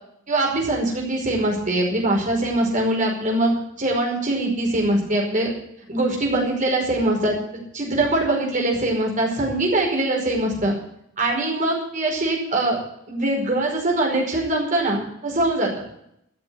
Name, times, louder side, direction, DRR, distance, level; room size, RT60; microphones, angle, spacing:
voice 1, 0.3-5.5 5.9-7.3 7.7-10.7 11.2-12.8 13.1-15.7, right 1 dB, 40° right, -1 dB, 5.1 m, -22 dB
14.0 x 7.2 x 9.8 m, 0.74 s
head